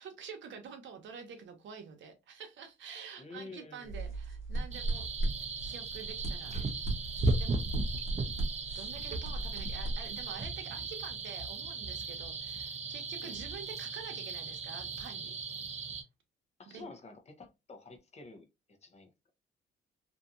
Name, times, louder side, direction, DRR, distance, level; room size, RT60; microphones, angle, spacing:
voice 1, 0.0-5.0 5.6-6.5 7.4-7.6 8.1-8.4 8.7-15.3 16.7-16.9, right 6 dB, 70° right, 0.9 m, -47 dB
voice 2, 3.2-4.1 13.2-13.4 16.6-19.1, left 3 dB, 35° left, 0.7 m, -50 dB
sound 1, 3.9-10.5, right 2 dB, 85° left, 1.2 m, -37 dB
sound 2, 4.7-16.0, right 3 dB, 35° right, 0.6 m, -37 dB
2.7 x 2.5 x 2.4 m
cardioid pair, 90°, 20 cm